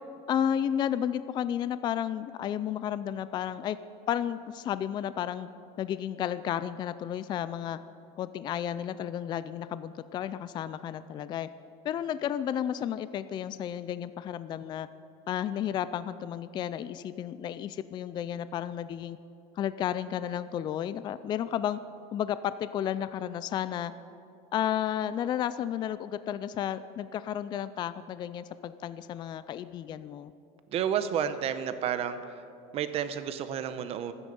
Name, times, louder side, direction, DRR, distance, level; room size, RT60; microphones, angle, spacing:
voice 1, 0.3-3.8 4.1-5.5 5.8-7.8 8.2-11.5 11.8-14.9 15.3-19.2 19.6-21.8 22.1-23.9 24.5-30.3, left 10 dB, 25° left, 14 dB, 0.4 m, -32 dB
voice 2, 30.7-32.2 32.7-34.1, right 9 dB, 40° right, 11 dB, 0.9 m, -30 dB
25.5 x 9.8 x 5.4 m, 2.6 s
cardioid pair, 155°, 16 cm